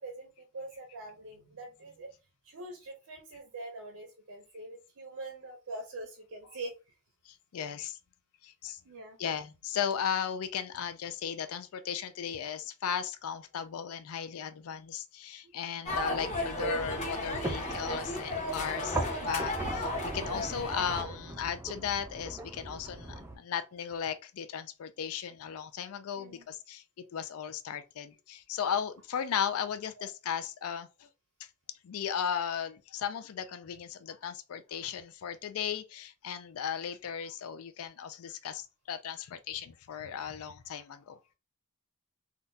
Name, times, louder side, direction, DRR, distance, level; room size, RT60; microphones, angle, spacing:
voice 1, 0.0-2.1 2.4-6.7 8.8-9.2 15.4-15.5 16.1-16.4 26.1-26.4 30.0-30.1, right 2 dB, 75° right, 0.6 m, -44 dB
voice 2, 7.3-8.0 8.4-8.8 9.2-26.8 27.1-31.1 31.8-41.3, left 8 dB, 80° left, 0.4 m, -36 dB
sound 1, 15.9-21.0, left 1 dB, 35° left, 0.9 m, -34 dB
sound 2, 15.9-23.4, right 1 dB, 10° right, 0.4 m, -40 dB
3.6 x 2.3 x 2.6 m
head